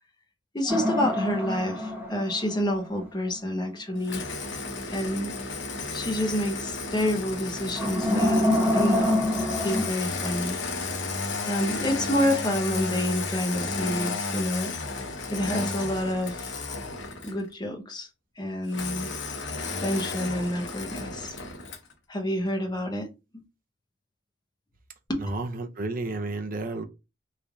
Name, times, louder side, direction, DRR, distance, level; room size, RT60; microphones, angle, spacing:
voice 1, 0.5-4.2 4.9-5.3 5.9-9.2 9.6-10.6 11.4-14.7 15.3-16.5 17.2-18.1 18.4-19.4 19.8-21.7 22.1-23.1 23.3-23.4 25.1-25.2, left 1 dB, 20° left, 0.8 m, -28 dB
sound 1, 0.7-3.1 7.7-9.9, left 1 dB, 10° right, 0.8 m, -26 dB
Engine starting, 4.0-17.5 18.7-21.9, left 3 dB, 70° left, 0.8 m, -33 dB
voice 2, 25.2-26.8, right 2 dB, 45° right, 0.6 m, -31 dB
3.2 x 2.6 x 3.4 m
head